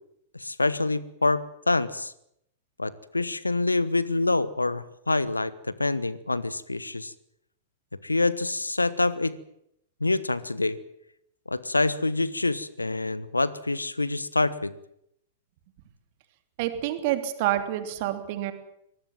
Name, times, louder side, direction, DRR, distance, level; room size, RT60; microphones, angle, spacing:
voice 1, 0.3-2.1 2.8-7.1 8.0-9.3 10.0-10.8 11.5-14.7, left 2 dB, 85° left, 18 dB, 1.2 m, -26 dB
voice 2, 16.6-18.5, right 13 dB, 45° right, 9 dB, 2.9 m, -28 dB
23.5 x 19.5 x 7.6 m, 0.76 s
figure-of-eight pair, 100°, 0 cm